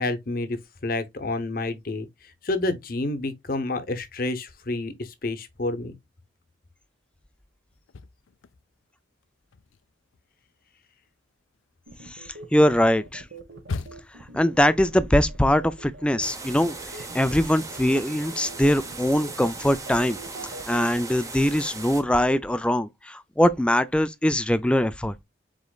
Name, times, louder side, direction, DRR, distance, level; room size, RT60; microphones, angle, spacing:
voice 1, 0.0-2.1 2.4-5.9, left 2 dB, 45° left, 0.8 m, -29 dB
sound 1, 7.7-8.9 9.2-14.3, left 3 dB, 85° left, 0.5 m, -40 dB
sound 2, 11.9-20.9, right 3 dB, 60° right, 1.0 m, -43 dB
voice 2, 12.1-13.2 14.3-16.8 17.1-20.2 20.7-25.1, left 1 dB, 5° left, 0.3 m, -22 dB
sound 3, 16.2-22.0, right 3 dB, 15° right, 0.7 m, -38 dB
5.0 x 4.3 x 2.3 m
head